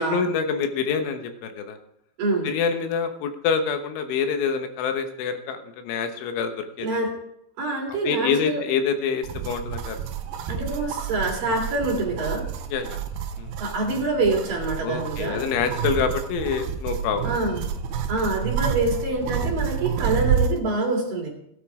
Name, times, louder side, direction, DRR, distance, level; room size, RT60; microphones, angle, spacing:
voice 1, 0.1-1.8 2.5-7.0 8.1-10.0 12.7-13.0 13.4-13.5 14.8-17.3, left 6 dB, 80° left, 6 dB, 3.7 m, -26 dB
voice 2, 2.2-2.5 6.8-7.2 7.6-8.6 10.5-12.5 13.6-15.4 17.2-17.7 18.1-21.3, right 2 dB, 50° right, 0 dB, 3.7 m, -26 dB
sound 1, 9.2-20.6, right 7 dB, 85° right, 2.0 m, -29 dB
17.0 x 9.3 x 4.9 m, 0.77 s
omnidirectional pair, 5.5 m